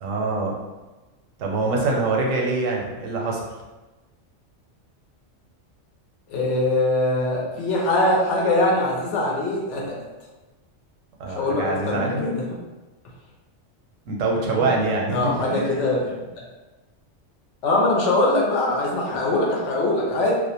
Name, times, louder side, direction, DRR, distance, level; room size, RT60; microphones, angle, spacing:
voice 1, 0.0-0.6 1.4-3.5 11.2-12.2 14.1-15.8, right 3 dB, 85° right, -1 dB, 1.0 m, -24 dB
voice 2, 6.3-10.0 11.4-12.4 15.1-16.3 17.6-20.3, left 2 dB, 70° left, -2 dB, 0.9 m, -22 dB
2.4 x 2.1 x 2.8 m, 1.1 s
omnidirectional pair, 1.3 m